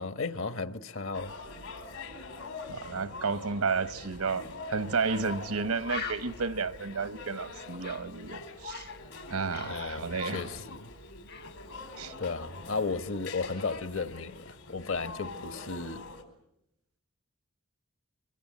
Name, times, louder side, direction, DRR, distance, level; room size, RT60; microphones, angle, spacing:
voice 1, 0.0-1.3 9.6-10.9 12.2-16.0, left 4 dB, 65° left, 1.2 m, -34 dB
sound 1, 1.1-16.2, left 3 dB, 80° left, 4.5 m, -44 dB
voice 2, 2.7-8.9 9.3-10.6 12.0-12.1, right 4 dB, 85° right, 1.1 m, -32 dB
Bird, 5.0-5.1 5.5-5.6 5.8-9.0 9.3-11.0 11.3-11.6, left 4 dB, 45° left, 0.9 m, -43 dB
25.5 x 24.0 x 8.6 m
head